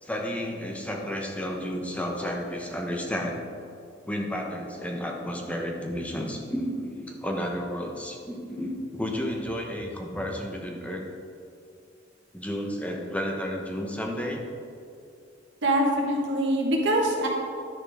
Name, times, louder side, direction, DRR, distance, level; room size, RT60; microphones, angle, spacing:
voice 1, 0.0-3.4 4.1-11.0 12.3-14.4, equal, 5° left, 1 dB, 0.9 m, -32 dB
voice 2, 15.6-17.3, right 1 dB, 65° right, -1 dB, 1.5 m, -24 dB
11.5 x 6.0 x 3.5 m, 2.4 s
head